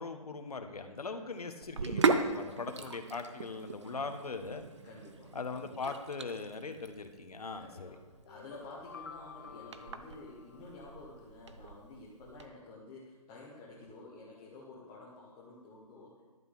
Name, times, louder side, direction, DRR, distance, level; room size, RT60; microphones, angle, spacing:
voice 1, 0.0-4.7 5.3-8.0 13.8-13.9, left 4 dB, 75° left, 7 dB, 1.5 m, -40 dB
Sink (filling or washing), 1.6-12.5, right 4 dB, 50° right, 0.8 m, -37 dB
voice 2, 2.2-2.7 4.8-5.4 7.6-16.2, left 2 dB, 10° left, -6 dB, 0.7 m, -51 dB
sound 1, 8.3-11.3, left 6 dB, 40° left, 0.4 m, -51 dB
11.5 x 8.2 x 5.6 m, 1.2 s
hypercardioid pair, 170°, 19 cm